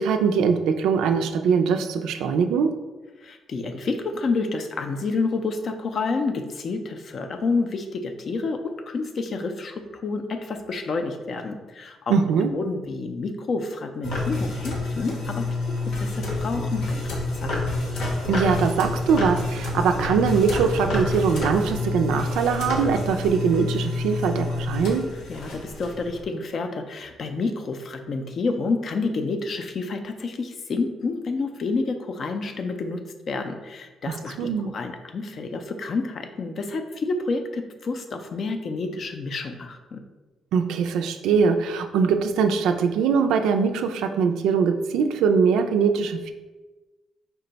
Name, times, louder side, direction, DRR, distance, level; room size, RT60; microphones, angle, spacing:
voice 1, 0.0-2.7 12.1-12.5 18.3-25.1 34.1-34.7 40.5-46.3, right 6 dB, 90° right, 7 dB, 0.3 m, -22 dB
voice 2, 3.2-12.1 12.5-15.5 15.9-17.6 25.3-40.0, left 3 dB, 55° left, 6 dB, 0.4 m, -29 dB
sound 1, 14.0-26.2, left 2 dB, 80° left, 0.9 m, -28 dB
4.5 x 2.2 x 3.9 m, 1.2 s
cardioid pair, 90°, 0 cm